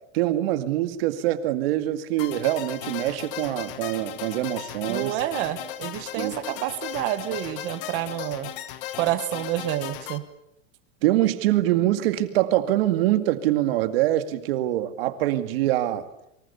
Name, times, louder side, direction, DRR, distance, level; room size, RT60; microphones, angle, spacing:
voice 1, 0.1-5.2 6.2-6.3 11.0-16.1, right 14 dB, 50° right, 9 dB, 2.2 m, -24 dB
sound 1, 2.2-10.2, left 12 dB, 45° left, 1.6 m, -36 dB
voice 2, 4.9-8.5 8.9-10.2, right 14 dB, 30° right, 11 dB, 1.3 m, -28 dB
27.0 x 24.5 x 7.1 m, 0.81 s
supercardioid pair, 175°, 37 cm